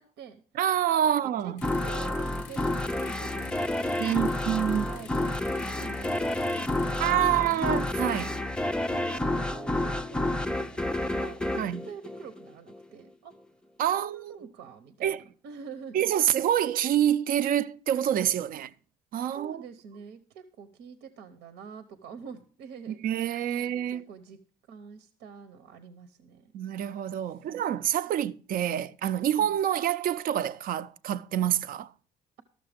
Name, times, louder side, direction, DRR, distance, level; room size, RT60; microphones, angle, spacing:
voice 1, 0.0-0.4 1.0-1.5 1.8-4.3 4.7-7.9 8.9-13.3 13.9-16.1 19.3-23.3 23.6-26.5 27.2-27.5 28.1-28.2 29.4-29.6, right 6 dB, 90° right, 0.9 m, -46 dB
voice 2, 0.6-1.6 4.0-4.9 7.0-8.4 11.6-11.8 13.8-14.4 15.0-15.2 15.9-18.7 19.1-19.6 22.9-24.0 26.5-31.9, right 10 dB, 55° right, 0.5 m, -27 dB
sound 1, 1.6-8.3, left 10 dB, 85° left, 0.6 m, -49 dB
sound 2, 1.6-12.8, left 1 dB, 5° left, 0.4 m, -30 dB
13.0 x 6.7 x 5.0 m
cardioid pair, 110°, 17 cm